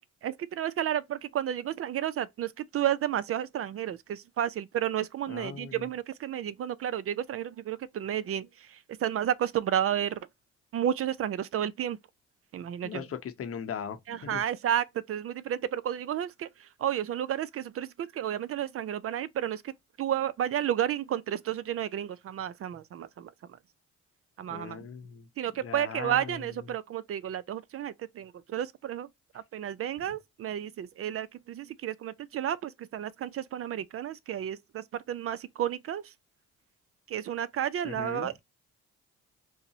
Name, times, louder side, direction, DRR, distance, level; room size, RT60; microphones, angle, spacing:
voice 1, 0.2-10.2 10.7-12.0 12.5-13.0 14.1-16.5 16.8-19.7 20.0-23.3 24.4-24.8 25.4-29.1 29.5-36.0 37.1-38.4, right 10 dB, 50° right, 0.4 m, -32 dB
voice 2, 5.3-5.9 12.8-14.4 24.5-25.3 25.6-26.6 37.8-38.3, left 7 dB, 50° left, 0.7 m, -39 dB
5.5 x 2.0 x 2.7 m
cardioid pair, 90°, 30 cm